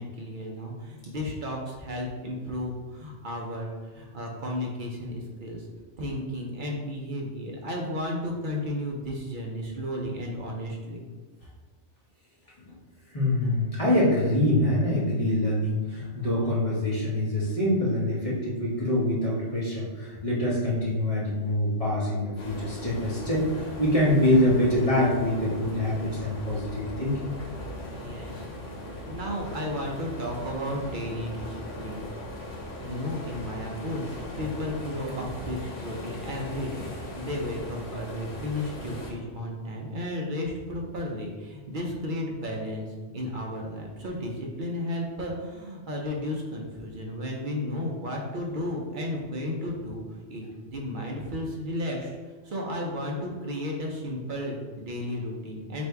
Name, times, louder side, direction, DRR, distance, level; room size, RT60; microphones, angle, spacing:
voice 1, 0.0-5.7 6.0-11.0 27.9-28.5 29.0-32.1 32.8-50.0 50.3-52.2 52.4-55.8, left 1 dB, 55° right, -1 dB, 0.6 m, -33 dB
voice 2, 13.1-27.2, left 1 dB, 30° left, -7 dB, 0.9 m, -25 dB
sound 1, 22.4-39.1, left 1 dB, 80° left, 1.1 m, -39 dB
3.3 x 2.6 x 4.4 m, 1.3 s
omnidirectional pair, 1.3 m